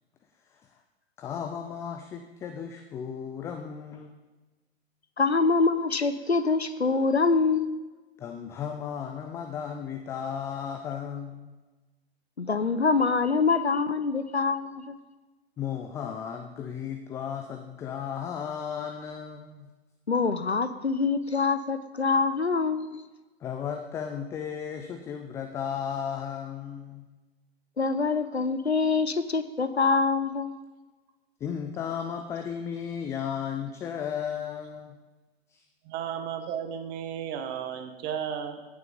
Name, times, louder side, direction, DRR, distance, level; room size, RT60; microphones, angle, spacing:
voice 1, 0.5-0.8 1.2-4.1 8.2-11.5 15.6-19.7 23.4-27.1 31.4-35.0 35.5-35.7, left 7 dB, 10° left, 6 dB, 0.3 m, -35 dB
voice 2, 5.2-7.8 12.4-15.0 20.1-23.1 27.8-30.5, left 4 dB, 85° left, 11 dB, 0.8 m, -25 dB
voice 3, 35.8-38.6, right 8 dB, 30° right, 6 dB, 1.6 m, -34 dB
16.5 x 7.1 x 5.2 m, 1.2 s
figure-of-eight pair, 100°, 32 cm